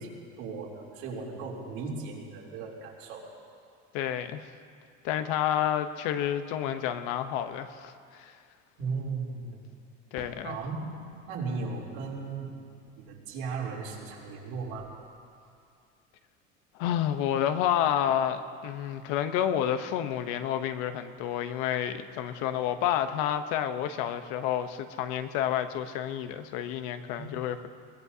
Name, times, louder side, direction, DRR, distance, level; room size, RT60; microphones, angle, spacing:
voice 1, 0.0-3.3 8.8-9.6 10.4-10.9 11.3-12.6 13.0-14.9 27.1-27.3, right 4 dB, 70° right, -3 dB, 3.3 m, -36 dB
voice 2, 3.9-4.5 5.0-8.4 10.1-10.6 16.8-27.7, left 10 dB, 85° left, 9 dB, 0.9 m, -29 dB
Fireworks, 10.2-14.5 14.8-15.6, left 1 dB, 10° left, 1.7 m, -56 dB
22.0 x 19.5 x 2.8 m, 2.4 s
cardioid pair, 170°, 30 cm